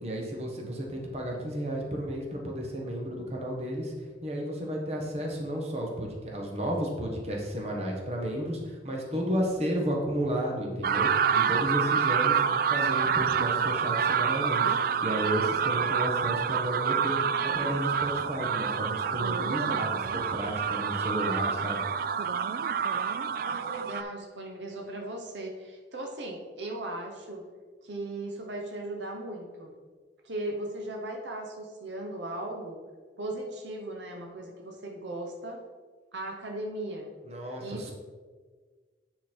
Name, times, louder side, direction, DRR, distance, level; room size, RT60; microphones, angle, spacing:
voice 1, 0.0-3.9 4.2-12.4 12.7-17.2 17.4-21.8 37.3-37.9, equal, 35° right, -1 dB, 1.3 m, -32 dB
sound 1, 10.8-24.0, right 7 dB, 55° right, 0.3 m, -27 dB
voice 2, 23.4-27.5 27.8-29.7 30.2-32.8 33.2-35.6 36.1-37.2 37.6-37.9, right 1 dB, 80° right, 1 dB, 1.0 m, -37 dB
9.4 x 4.1 x 4.4 m, 1.4 s
head